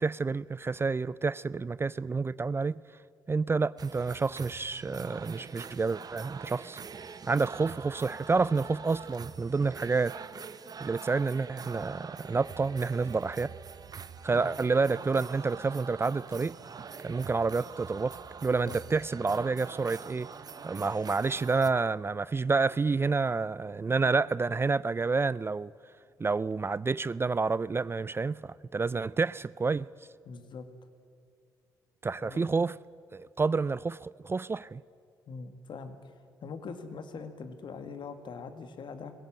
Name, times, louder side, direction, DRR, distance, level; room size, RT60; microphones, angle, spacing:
voice 1, 0.0-2.8 3.3-6.8 7.3-10.1 10.8-13.5 14.2-16.5 17.0-20.3 20.6-25.7 26.2-29.9 32.0-32.8 33.1-34.8, right 4 dB, 25° right, 0.4 m, -29 dB
sound 1, 3.8-21.7, right 6 dB, 45° right, 1.0 m, -44 dB
voice 2, 30.3-30.7 32.2-32.5 35.3-36.1 36.4-39.1, left 5 dB, 60° left, 2.0 m, -42 dB
20.0 x 17.0 x 8.8 m
hypercardioid pair, 50°, 9 cm